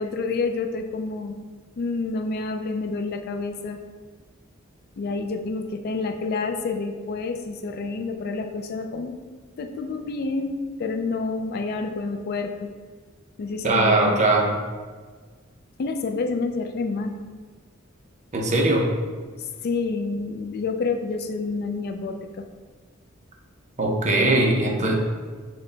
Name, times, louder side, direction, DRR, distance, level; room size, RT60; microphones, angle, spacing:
voice 1, 0.0-1.4 1.8-3.8 5.0-9.2 9.6-12.7 13.4-14.1 15.8-17.2 19.4-22.4, left 3 dB, 50° left, 5 dB, 0.3 m, -28 dB
voice 2, 13.6-14.5 18.3-18.9 23.8-24.9, right 2 dB, 35° right, 0 dB, 0.6 m, -20 dB
6.2 x 2.2 x 3.8 m, 1.5 s
head